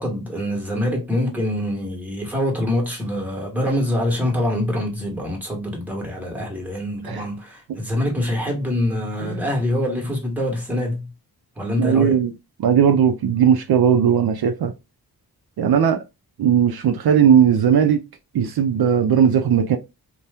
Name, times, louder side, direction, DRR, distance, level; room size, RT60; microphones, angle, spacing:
voice 1, 0.0-11.1 11.6-12.2, left 1 dB, 5° right, 1.2 m, -25 dB
voice 2, 11.8-12.3 12.6-14.7 15.6-16.0 16.4-18.0 18.3-19.8, right 8 dB, 70° right, 0.6 m, -17 dB
2.7 x 2.2 x 3.4 m
wide cardioid pair, 95°, 39 cm